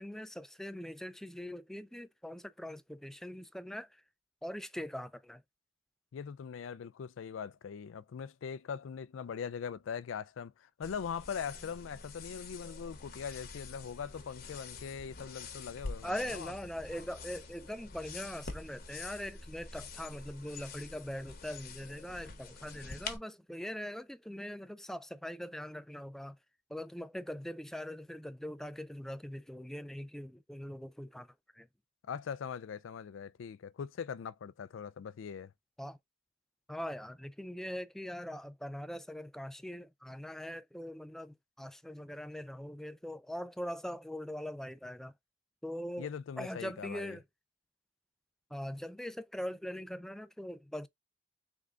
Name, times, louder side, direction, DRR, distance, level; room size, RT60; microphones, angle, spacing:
voice 1, 0.0-4.0 4.4-5.4 16.0-26.4 26.7-31.7 35.8-36.0 36.7-45.1 45.6-46.1 46.4-47.2 48.5-50.9, equal, ahead, 0.3 m, -42 dB
voice 2, 6.1-16.5 32.1-35.5 46.0-47.2, left 7 dB, 85° left, 0.4 m, -41 dB
sound 1, 10.8-23.2, left 4 dB, 50° left, 1.0 m, -46 dB
3.6 x 3.5 x 3.7 m
head